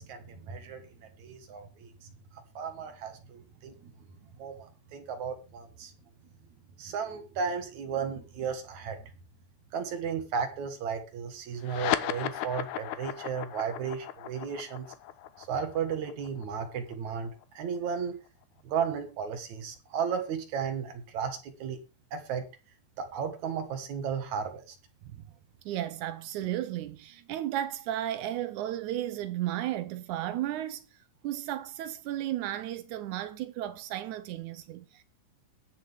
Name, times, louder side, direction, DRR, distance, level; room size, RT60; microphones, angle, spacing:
voice 1, 0.0-3.9 4.4-5.9 6.8-9.0 9.7-14.9 15.4-18.2 18.6-21.8 22.1-22.4 23.0-24.8, right 6 dB, 60° right, 2.5 m, -34 dB
sound 1, 11.6-18.4, left 13 dB, 85° left, 1.6 m, -36 dB
voice 2, 25.6-30.8 31.2-35.0, right 12 dB, 85° right, 1.7 m, -34 dB
21.0 x 7.0 x 3.5 m
omnidirectional pair, 4.4 m